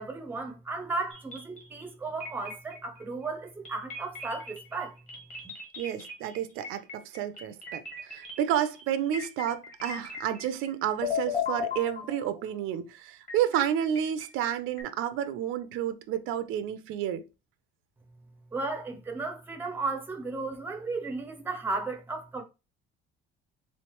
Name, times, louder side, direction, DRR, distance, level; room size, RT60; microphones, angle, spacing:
voice 1, 0.0-5.0 18.5-22.4, right 3 dB, 10° right, 0.5 m, -34 dB
sound 1, 1.1-1.9 2.2-3.0 3.7-10.7 11.0-12.5 13.3-14.8, left 6 dB, 35° left, 1.4 m, -37 dB
voice 2, 5.8-17.2, right 10 dB, 80° right, 0.5 m, -30 dB
3.7 x 3.2 x 3.0 m
cardioid pair, 175°, 21 cm